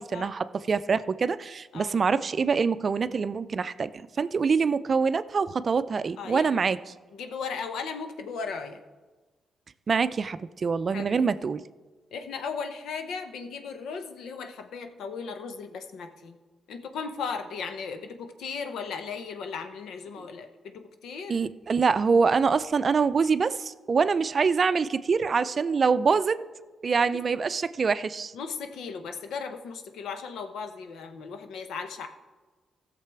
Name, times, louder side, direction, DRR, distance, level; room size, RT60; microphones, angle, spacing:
voice 1, 0.0-3.9 4.2-6.8 9.9-11.6 21.3-26.4 26.8-28.3, right 5 dB, 50° right, 14 dB, 0.4 m, -25 dB
voice 2, 6.2-6.7 7.1-8.8 10.9-11.2 12.1-16.4 16.7-21.4 28.3-32.1, left 5 dB, 80° left, 7 dB, 0.9 m, -36 dB
15.5 x 6.7 x 4.7 m, 1.3 s
supercardioid pair, 60°, 0 cm